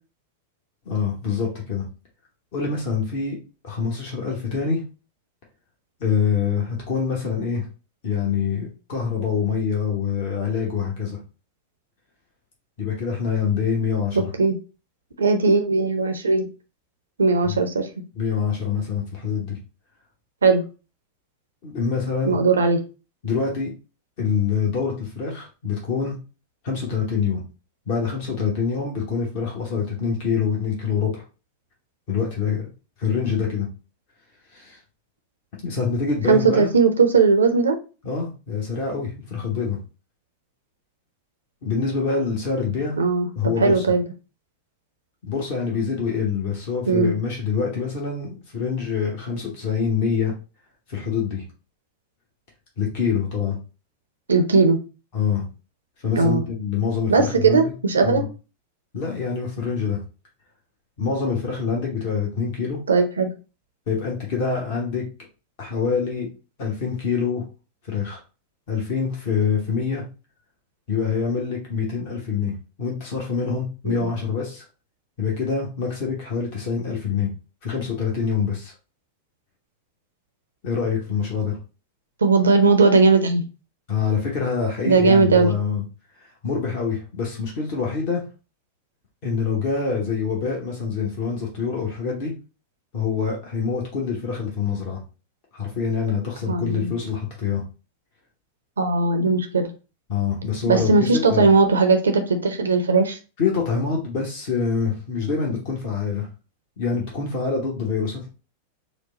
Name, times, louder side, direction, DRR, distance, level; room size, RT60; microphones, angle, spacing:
voice 1, 0.8-1.9 2.5-4.8 6.0-7.7 8.0-11.2 12.8-14.3 17.4-17.6 18.2-19.6 21.6-22.4 23.2-23.8 24.2-26.2 26.6-27.4 27.9-31.2 32.1-32.7 33.0-33.7 34.5-34.8 35.6-36.7 38.0-39.8 41.6-43.0 43.3-43.8 45.2-50.3 50.9-51.4 52.8-53.6 55.1-55.5 56.0-57.6 58.0-58.3 58.9-60.0 61.0-62.8 63.9-65.0 65.6-66.3 66.6-67.4 67.9-68.2 68.7-70.0 70.9-74.6 75.2-77.3 77.6-78.7 80.6-81.6 83.9-85.8 86.4-88.2 89.2-92.3 92.9-95.0 95.5-97.6 100.1-101.5 103.4-106.3 106.8-108.3, left 6 dB, 45° left, -1 dB, 1.2 m, -25 dB
voice 2, 15.2-16.5 17.2-17.9 20.4-20.6 22.3-22.8 36.3-37.8 43.0-43.3 43.6-44.0 46.9-47.1 54.3-54.8 56.2-56.4 57.1-58.2 62.9-63.3 73.8-74.0 82.2-83.4 84.9-85.5 96.5-96.9 98.8-99.7 100.7-103.2, right 4 dB, 70° right, 6 dB, 0.6 m, -18 dB
4.9 x 2.3 x 3.9 m, 0.33 s
figure-of-eight pair, 90°, 0 cm